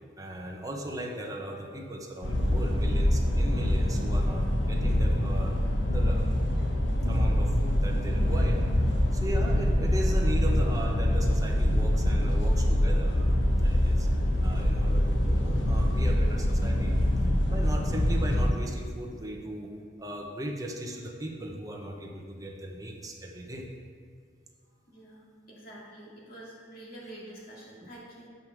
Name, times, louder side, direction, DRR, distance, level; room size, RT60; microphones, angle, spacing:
voice 1, 0.2-5.6 5.9-6.3 7.1-13.3 13.6-14.1 14.4-17.0 17.5-19.7 20.0-23.7 27.8-27.9, right 1 dB, 20° right, 0 dB, 1.0 m, -38 dB
sound 1, 2.2-18.5, left 1 dB, 75° left, 1.1 m, -25 dB
voice 2, 24.9-28.3, right 1 dB, 55° left, -6 dB, 2.5 m, -47 dB
8.0 x 5.4 x 6.0 m, 2.1 s
head